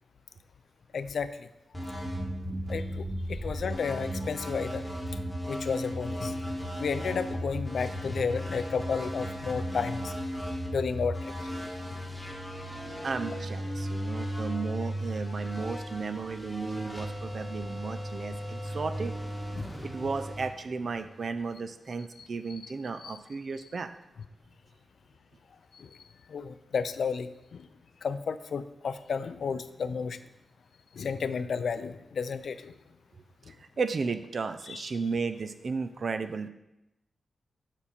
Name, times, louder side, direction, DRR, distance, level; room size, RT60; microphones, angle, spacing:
voice 1, 0.9-1.5 2.7-4.8 5.5-6.4 6.8-10.1 10.7-11.3 19.6-19.7 23.0-23.2 25.7-25.9 26.3-27.7 28.0-30.2 31.0-32.7 34.7-34.8, left 5 dB, 70° left, 12 dB, 0.4 m, -32 dB
sound 1, 1.7-21.3, equal, ahead, 1.5 m, -36 dB
voice 2, 13.0-19.1 19.8-23.9 33.8-36.5, right 4 dB, 50° right, 10 dB, 0.4 m, -34 dB
7.2 x 5.3 x 4.3 m, 0.89 s
wide cardioid pair, 135°, 0 cm